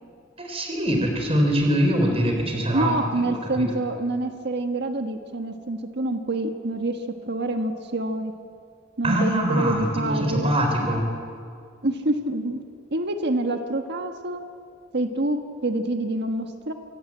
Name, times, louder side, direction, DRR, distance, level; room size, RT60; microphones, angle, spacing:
voice 1, 0.4-3.7 9.0-11.0, equal, 30° right, 3 dB, 4.1 m, -23 dB
voice 2, 2.7-8.3 9.0-10.5 11.8-12.6 12.9-14.4 14.9-16.7, right 2 dB, 60° right, 5 dB, 1.5 m, -27 dB
26.0 x 18.0 x 8.8 m, 2.2 s
head